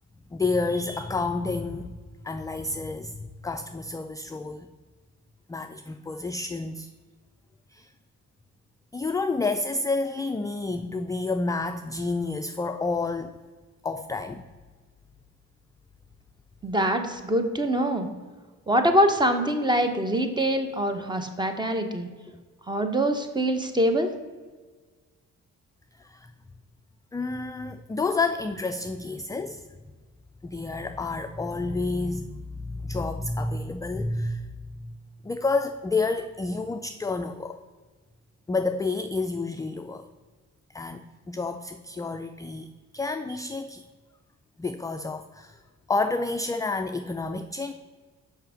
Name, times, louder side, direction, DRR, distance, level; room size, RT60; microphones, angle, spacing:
voice 1, 0.3-2.0 2.2-4.7 5.5-6.9 7.7-7.9 8.9-13.4 13.8-14.4 26.0-26.3 27.1-29.7 30.4-34.5 34.8-34.9 35.2-37.6 38.5-40.0 40.7-43.9 44.6-45.6 45.9-47.7, left 3 dB, 10° left, 7 dB, 0.3 m, -29 dB
voice 2, 16.6-18.1 18.7-22.1 22.7-24.1, equal, 15° right, 7 dB, 1.0 m, -24 dB
5.7 x 5.7 x 5.0 m, 1.4 s
cardioid pair, 90°, 30 cm